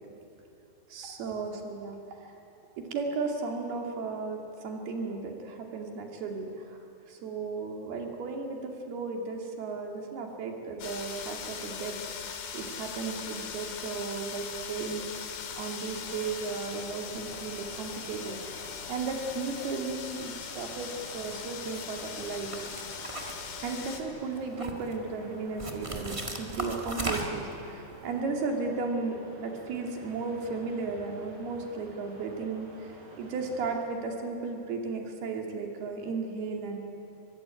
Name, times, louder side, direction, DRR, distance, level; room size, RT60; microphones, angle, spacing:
voice 1, 0.9-2.3 2.7-6.8 7.1-12.0 12.5-15.1 15.6-22.5 23.6-36.8, right 4 dB, 80° right, 2 dB, 4.5 m, -35 dB
sound 1, 10.8-24.0, left 7 dB, 90° left, 4.0 m, -40 dB
sound 2, 15.9-33.8, right 1 dB, 55° right, 5.4 m, -50 dB
sound 3, 21.7-22.0 22.5-24.0 24.3-25.0 25.6-27.5, right 1 dB, 40° right, 0.4 m, -36 dB
23.5 x 22.0 x 9.2 m, 2.8 s
omnidirectional pair, 4.4 m